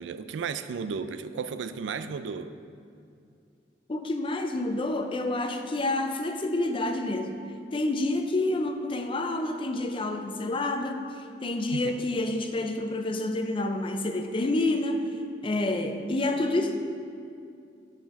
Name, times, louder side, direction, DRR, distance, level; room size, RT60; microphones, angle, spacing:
voice 1, 0.0-2.5 11.7-12.0, right 5 dB, 85° right, 11 dB, 0.4 m, -34 dB
voice 2, 3.9-7.4 7.7-15.1 15.4-16.8, left 2 dB, 30° left, 6 dB, 0.5 m, -28 dB
8.3 x 4.3 x 5.1 m, 2.5 s
head